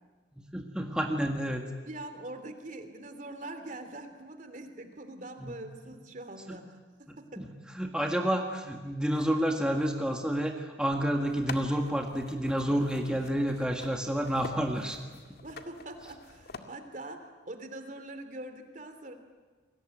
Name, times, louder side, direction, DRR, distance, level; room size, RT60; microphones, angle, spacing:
voice 1, 0.3-1.6 5.4-5.5 6.5-6.6 7.1-15.0 15.3-15.4, equal, 5° right, 2 dB, 1.8 m, -30 dB
voice 2, 1.8-6.7 7.0-7.5 9.1-9.3 15.4-19.1, right 2 dB, 45° right, 8 dB, 3.0 m, -43 dB
sound 1, 11.2-16.6, left 3 dB, 60° left, 2.0 m, -46 dB
29.5 x 22.0 x 9.2 m, 1.4 s
head